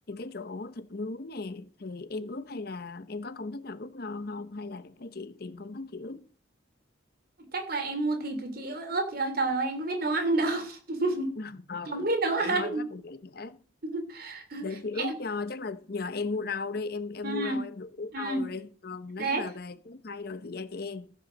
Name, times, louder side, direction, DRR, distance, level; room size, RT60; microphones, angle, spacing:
voice 1, 0.1-6.3 11.4-12.1 12.4-13.6 14.6-21.1, left 3 dB, 55° left, 0.9 m, -37 dB
voice 2, 7.5-11.3 11.9-12.8 13.8-14.7 15.0-15.1 17.2-17.6 18.1-18.4 19.2-19.4, right 2 dB, 55° right, 3.0 m, -29 dB
15.0 x 5.6 x 7.3 m
head